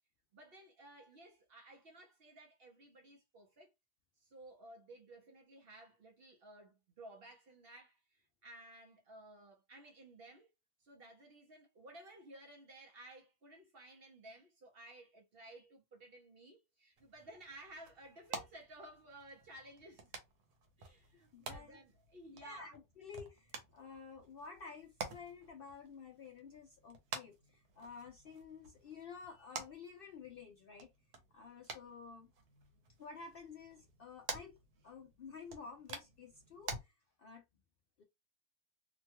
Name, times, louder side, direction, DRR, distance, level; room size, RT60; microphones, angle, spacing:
voice 1, 0.3-3.7 4.2-10.5 10.8-20.1 20.8-22.7, right 1 dB, 55° right, 0.7 m, -56 dB
sound 1, 17.0-36.8, right 4 dB, 85° right, 1.3 m, -50 dB
voice 2, 21.3-21.8 22.4-30.9 31.3-32.3 33.0-34.6 34.8-37.4 38.0-38.1, left 5 dB, 85° left, 0.5 m, -52 dB
2.9 x 2.2 x 2.8 m
omnidirectional pair, 1.6 m